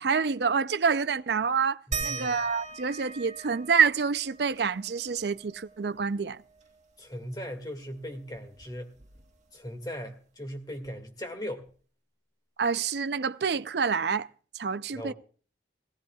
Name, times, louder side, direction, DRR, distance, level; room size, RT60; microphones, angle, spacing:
voice 1, 0.0-6.4 12.6-14.3 14.5-15.1, right 6 dB, 65° right, 0.5 m, -27 dB
voice 2, 1.9-2.4 7.0-8.9 9.5-11.7 14.9-15.1, equal, 25° left, 2.0 m, -38 dB
sound 1, 1.9-7.0 7.4-7.5 7.8-9.6 10.8-10.9 11.7-11.8, right 4 dB, 40° right, 1.4 m, -41 dB
18.5 x 17.0 x 2.3 m
head